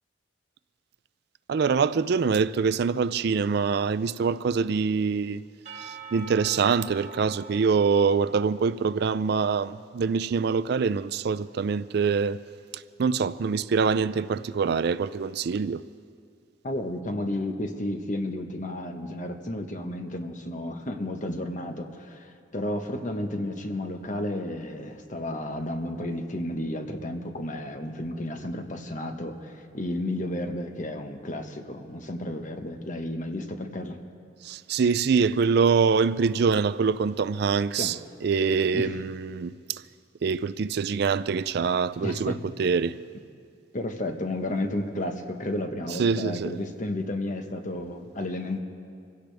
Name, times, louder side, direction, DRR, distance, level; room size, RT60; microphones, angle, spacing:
voice 1, 1.5-5.4 5.8-12.4 12.7-15.8 34.4-38.0 38.2-39.8 40.2-43.0 45.9-46.5, right 5 dB, 60° right, 0.4 m, -25 dB
Percussion / Church bell, 5.7-9.6, right 4 dB, 40° right, 2.8 m, -45 dB
voice 2, 16.6-34.0 37.8-37.9 38.7-39.0 42.0-42.4 43.7-48.6, left 1 dB, 45° left, 1.3 m, -32 dB
25.5 x 16.5 x 3.4 m
head